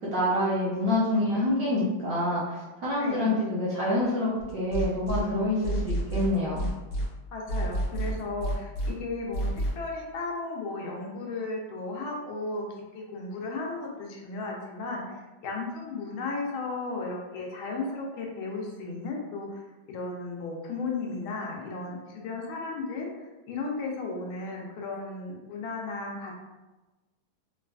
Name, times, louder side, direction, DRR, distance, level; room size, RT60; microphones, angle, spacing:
voice 1, 0.1-6.6, left 1 dB, 65° right, -6 dB, 0.9 m, -27 dB
voice 2, 3.0-3.4 7.3-9.5 9.8-12.6 12.9-26.4, left 3 dB, 90° left, -1 dB, 1.5 m, -35 dB
sound 1, 4.4-5.2 5.6-7.0 7.5-8.9 9.3-9.7, right 1 dB, 40° left, 0.9 m, -29 dB
4.0 x 2.3 x 2.3 m, 1.1 s
omnidirectional pair, 2.2 m